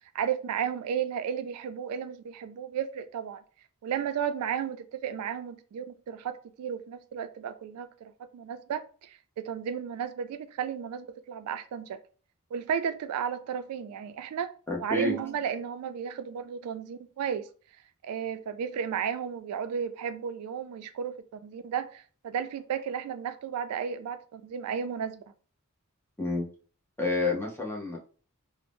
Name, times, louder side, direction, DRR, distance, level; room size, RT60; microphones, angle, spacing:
voice 1, 0.1-3.4 3.8-12.0 12.5-14.5 14.8-17.5 18.0-25.2, right 8 dB, 85° right, 0.3 m, -33 dB
voice 2, 14.7-15.2 26.2-26.5 27.0-28.0, left 2 dB, 10° left, 0.6 m, -29 dB
2.6 x 2.0 x 3.4 m
head